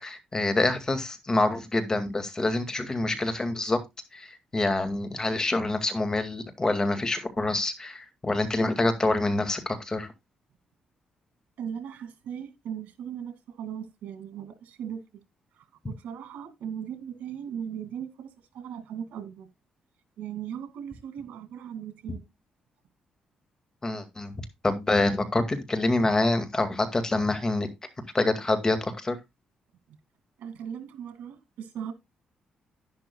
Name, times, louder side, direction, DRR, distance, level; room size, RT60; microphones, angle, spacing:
voice 1, 0.0-3.8 4.1-10.1 23.8-24.3 24.6-27.7 28.1-29.2, left 2 dB, 25° left, 2.1 m, -26 dB
voice 2, 11.6-15.0 15.6-19.5 20.2-22.3 30.4-31.9, right 8 dB, 85° right, 2.3 m, -38 dB
11.5 x 10.5 x 2.3 m
cardioid pair, 95°, 3 cm